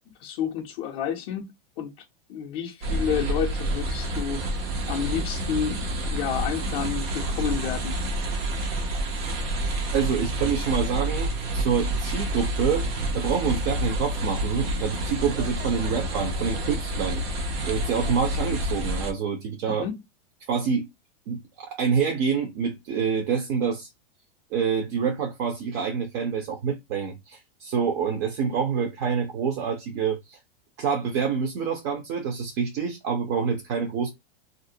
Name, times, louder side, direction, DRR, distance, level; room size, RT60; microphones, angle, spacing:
voice 1, 0.2-1.5 1.8-1.9 2.3-4.4 4.9-5.8 6.1-8.0 19.7-19.9, left 8 dB, 30° left, 0.4 m, -30 dB
sound 1, 2.8-19.1, right 1 dB, 75° right, 0.8 m, -28 dB
voice 2, 9.9-12.9 13.1-17.2 17.7-19.9 20.5-20.9 21.3-23.9 24.5-30.4 30.8-34.1, right 6 dB, 40° right, 0.5 m, -27 dB
2.4 x 2.0 x 2.6 m
supercardioid pair, 155°, 30 cm